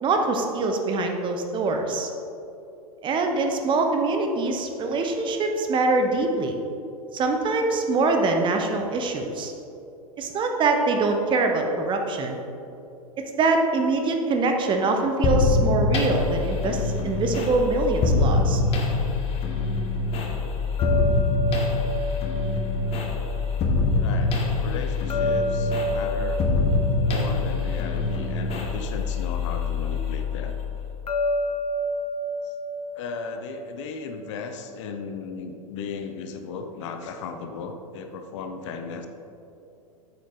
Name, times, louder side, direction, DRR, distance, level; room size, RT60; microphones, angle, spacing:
voice 1, 0.0-2.1 3.0-6.5 7.1-9.5 10.2-12.4 13.2-18.6, right 3 dB, 25° right, 4 dB, 1.0 m, -24 dB
sound 1, 15.2-30.9, left 3 dB, 30° left, 1.3 m, -25 dB
sound 2, 20.8-23.9 25.1-28.6 31.1-34.2, equal, 90° left, 0.5 m, -30 dB
voice 2, 24.0-26.4 27.0-30.5 32.4-32.5 33.0-39.1, left 5 dB, 50° left, 6 dB, 0.8 m, -36 dB
8.4 x 7.6 x 3.8 m, 2.8 s
figure-of-eight pair, 100°, 19 cm